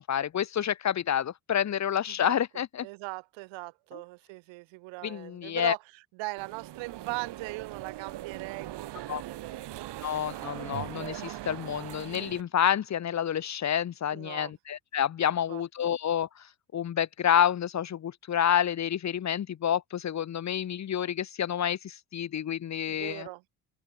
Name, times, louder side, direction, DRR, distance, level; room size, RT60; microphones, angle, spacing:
voice 1, 0.0-2.9 3.9-4.0 5.0-5.7 9.1-9.2 10.0-23.3, left 9 dB, 40° left, 1.1 m, -29 dB
voice 2, 2.8-5.8 6.2-10.0 14.1-14.5 15.5-15.6 22.9-23.4, right 25 dB, 85° right, 4.3 m, -40 dB
sound 1, 6.4-12.4, right 14 dB, 65° right, 5.2 m, -40 dB
cardioid pair, 95°, 44 cm